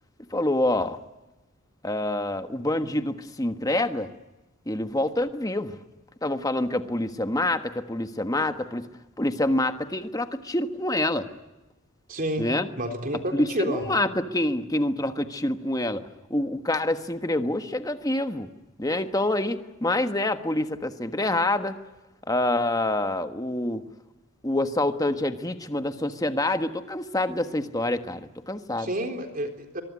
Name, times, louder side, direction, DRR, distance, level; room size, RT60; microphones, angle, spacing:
voice 1, 0.3-1.0 1.8-4.1 4.7-5.8 6.2-8.9 9.2-11.3 12.4-12.7 13.3-16.0 16.3-18.5 18.8-21.8 22.3-23.8 24.4-28.9, left 1 dB, 15° left, 8 dB, 1.4 m, -26 dB
voice 2, 12.1-12.5 12.8-14.0 28.8-29.8, right 1 dB, 40° right, 5 dB, 3.9 m, -29 dB
24.0 x 23.0 x 9.9 m, 1.0 s
head